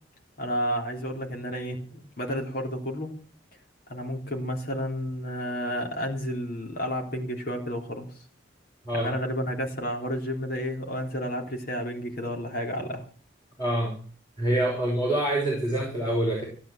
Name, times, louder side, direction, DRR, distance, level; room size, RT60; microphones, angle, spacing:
voice 1, 0.4-3.1 3.9-8.1 8.9-13.0, equal, 50° left, 2 dB, 3.5 m, -31 dB
voice 2, 13.6-13.9 14.4-16.5, right 1 dB, 20° left, -2 dB, 5.0 m, -26 dB
16.0 x 9.5 x 7.6 m, 0.42 s
head